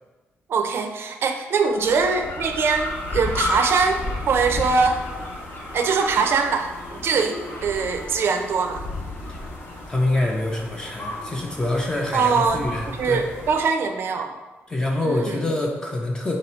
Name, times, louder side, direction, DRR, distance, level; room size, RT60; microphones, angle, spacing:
voice 1, 0.5-5.0 5.7-7.4 7.6-8.8 12.1-14.3 15.0-15.4, right 5 dB, 60° right, 6 dB, 0.5 m, -22 dB
sound 1, 1.7-13.6, left 2 dB, 60° left, 1.0 m, -33 dB
voice 2, 9.9-13.3 14.7-16.4, left 2 dB, 15° left, -1 dB, 0.5 m, -25 dB
4.0 x 2.8 x 4.3 m, 1.2 s
cardioid pair, 125°, 5 cm